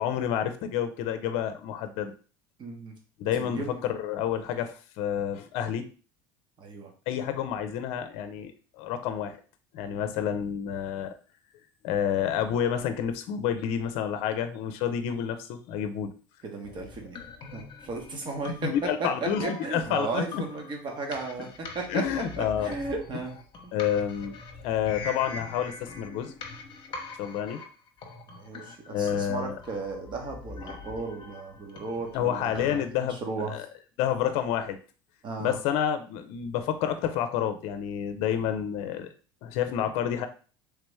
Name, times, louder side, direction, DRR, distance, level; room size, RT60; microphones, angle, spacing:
voice 1, 0.0-2.1 3.2-5.9 7.1-8.5 8.8-9.4 9.7-11.1 11.8-16.1 18.6-20.4 21.4-21.5 21.9-22.7 23.7-24.4 24.6-26.3 27.2-27.6 28.9-29.6 32.1-33.7 34.0-34.8 35.4-39.1 39.4-40.3, left 9 dB, 60° left, 9 dB, 0.6 m, -29 dB
voice 2, 2.6-2.9 3.4-3.8 6.6-6.9 16.4-17.2 17.5-18.7 19.0-22.0 22.4-23.3 23.6-23.7 28.4-33.5 35.2-35.6, right 3 dB, 40° right, 2 dB, 1.3 m, -35 dB
sound 1, 16.6-32.8, left 4 dB, 45° left, 0.9 m, -43 dB
3.4 x 3.0 x 3.4 m, 0.39 s
hypercardioid pair, 85°, 12 cm